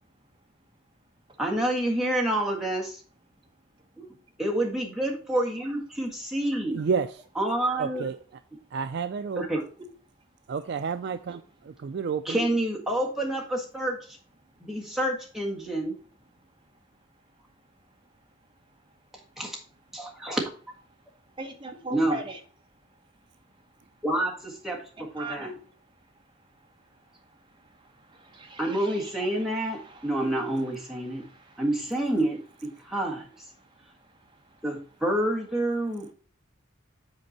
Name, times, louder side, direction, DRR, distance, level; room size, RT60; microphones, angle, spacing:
voice 1, 1.4-3.0 4.0-4.1 4.4-6.8 7.4-8.0 9.4-9.6 12.2-14.0 14.6-15.9 19.4-19.6 19.9-20.4 21.9-22.2 24.0-24.8 25.1-25.5 28.6-31.2 31.6-33.2 34.6-36.1, right 1 dB, ahead, -2 dB, 1.5 m, -28 dB
voice 2, 6.7-7.2 7.8-8.2 8.7-9.5 10.5-12.4, right 5 dB, 50° right, 11 dB, 0.3 m, -30 dB
voice 3, 21.3-22.4 25.0-25.7 26.5-31.6 32.7-32.9 33.6-34.6, right 2 dB, 20° right, 2 dB, 1.2 m, -42 dB
8.0 x 4.4 x 4.1 m, 0.41 s
head